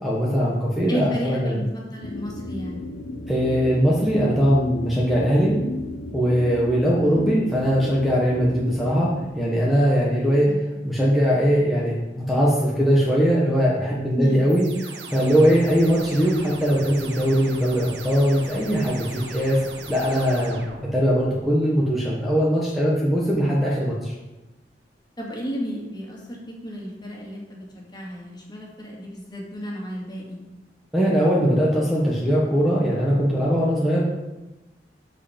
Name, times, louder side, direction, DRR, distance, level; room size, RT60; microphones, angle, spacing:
voice 1, 0.0-1.6 3.3-5.5 6.1-10.5 10.8-19.6 19.9-20.6 20.9-24.1 30.9-34.0, equal, ahead, -5 dB, 1.3 m, -21 dB
voice 2, 0.9-2.8 7.0-7.2 10.4-10.6 14.2-14.6 25.2-30.4, equal, 25° left, -2 dB, 2.3 m, -33 dB
sound 1, 2.0-9.3, left 2 dB, 80° left, 0.7 m, -34 dB
sound 2, 14.5-21.3, right 3 dB, 75° right, 1.4 m, -38 dB
13.0 x 4.9 x 5.2 m, 1.1 s
head